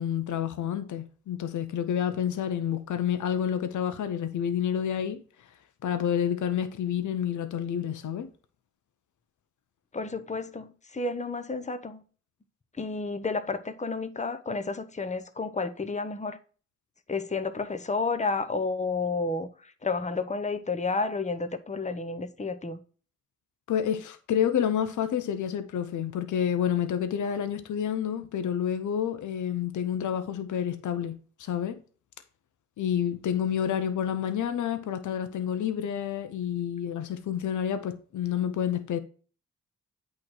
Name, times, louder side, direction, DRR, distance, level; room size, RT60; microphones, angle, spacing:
voice 1, 0.0-5.2 5.8-8.3 23.7-31.8 32.8-39.0, left 9 dB, 80° left, 0.7 m, -29 dB
voice 2, 9.9-12.0 12.8-16.4 17.1-22.8, left 3 dB, 25° left, 0.9 m, -31 dB
8.4 x 3.2 x 6.2 m
cardioid pair, 55°, 30 cm